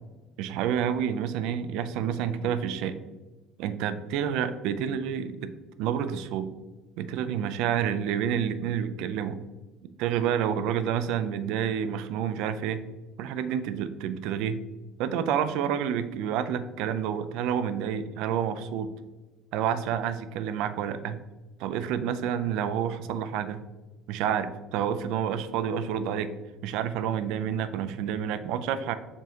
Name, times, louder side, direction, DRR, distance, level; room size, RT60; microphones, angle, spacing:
voice 1, 0.4-3.0 3.6-5.5 5.8-6.5 7.0-9.4 10.0-12.8 13.2-14.6 15.0-18.9 19.5-21.2 21.6-23.6 24.1-26.3 26.6-28.9, right 8 dB, 70° right, 11 dB, 0.4 m, -29 dB
5.1 x 3.8 x 2.8 m, 1.2 s
cardioid pair, 135°, 0 cm